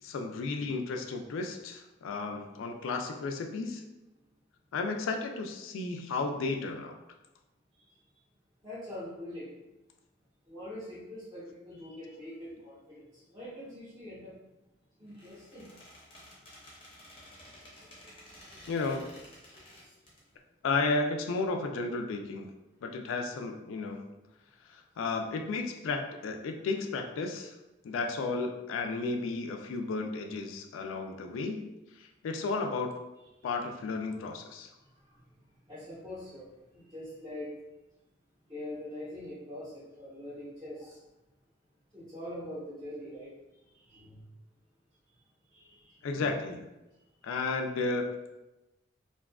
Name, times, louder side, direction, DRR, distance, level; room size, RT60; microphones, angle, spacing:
voice 1, 0.0-3.8 4.7-7.0 18.7-19.1 20.6-22.5 22.8-24.0 24.7-27.5 27.8-31.7 32.2-32.9 33.4-34.7 46.0-46.6 47.2-48.1, left 3 dB, 80° left, 4 dB, 0.3 m, -33 dB
voice 2, 8.6-9.7 10.4-14.4 15.0-16.3 16.9-18.6 19.5-20.1 33.4-33.5 34.8-37.6 38.5-41.0 41.9-44.2 45.1-45.2 45.5-46.3 47.2-47.4, left 1 dB, 20° right, -11 dB, 0.8 m, -45 dB
Squeak, 15.1-20.2, left 1 dB, 25° left, 0.6 m, -53 dB
2.5 x 2.3 x 2.2 m, 0.99 s
head